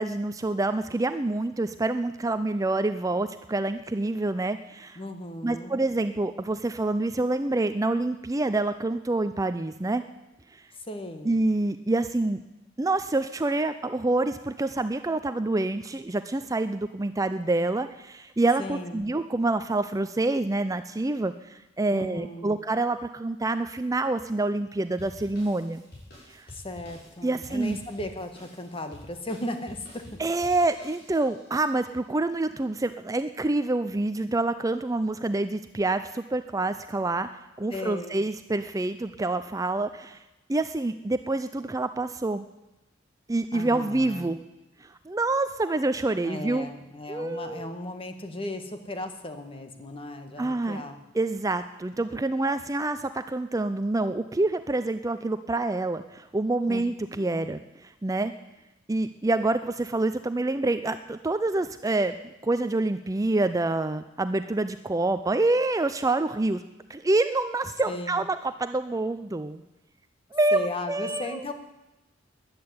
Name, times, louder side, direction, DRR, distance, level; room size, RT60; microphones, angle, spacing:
voice 1, 0.0-5.0 5.4-10.0 10.5-10.6 11.2-12.4 12.8-25.8 26.3-26.5 27.2-27.8 30.2-37.3 37.6-40.2 40.5-42.4 43.3-44.4 44.8-46.7 47.1-47.7 50.4-50.8 51.1-58.3 58.9-62.2 62.4-66.6 66.9-69.6 70.3-71.4, right 2 dB, 20° right, 10 dB, 0.5 m, -27 dB
voice 2, 4.9-5.8 10.8-11.4 18.6-19.1 21.9-22.6 26.5-30.2 37.7-38.2 43.5-44.3 46.2-51.0 56.7-56.8 57.1-57.5 67.8-68.2 70.5-71.5, left 1 dB, 30° left, 7 dB, 1.6 m, -36 dB
sound 1, 25.0-31.5, left 1 dB, 55° left, 7.0 m, -49 dB
13.5 x 10.5 x 9.5 m, 1.0 s
head